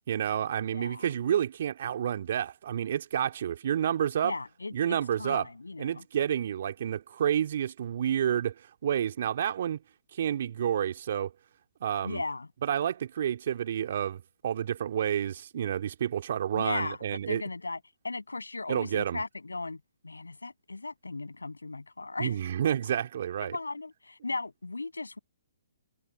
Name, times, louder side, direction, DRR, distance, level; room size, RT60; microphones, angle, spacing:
voice 1, 0.1-4.3 4.7-5.5 5.8-9.8 10.2-11.3 11.8-12.2 12.6-17.4 18.7-19.2 22.2-23.6, right 9 dB, 55° right, 2.7 m, -29 dB
voice 2, 0.7-1.1 4.2-6.0 12.0-12.5 16.5-17.0 17.3-17.8 18.0-22.4 23.4-25.2, left 3 dB, 85° left, 7.0 m, -37 dB
figure-of-eight pair, 130°, 0 cm